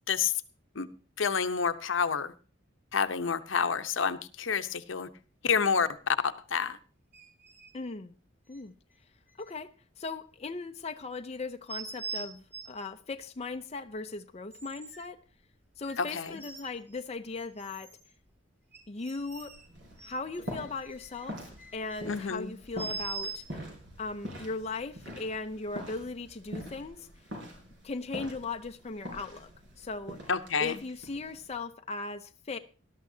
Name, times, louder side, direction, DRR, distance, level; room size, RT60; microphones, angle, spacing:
voice 1, 1.2-2.3 2.9-5.1 5.4-6.8 16.0-16.4 22.0-22.5 30.3-30.7, left 6 dB, 75° left, 0.8 m, -29 dB
sound 1, 7.1-7.7 8.5-8.6 9.4-9.5 11.7-12.8 13.6-13.7 14.5-15.1 15.8-17.1 17.3-18.1 18.7-19.7 20.0-22.0 22.8-23.4, right 4 dB, 10° right, 3.1 m, -42 dB
voice 2, 7.7-8.1 8.5-8.7 9.4-9.7 10.0-15.2 15.8-17.9 18.9-19.6 20.0-21.4 21.7-23.4 24.0-27.1 27.8-29.5 29.8-30.3 30.6-32.6, left 3 dB, 30° left, 0.5 m, -38 dB
sound 2, 19.3-31.5, equal, 65° right, 4.9 m, -45 dB
19.5 x 12.5 x 2.8 m
head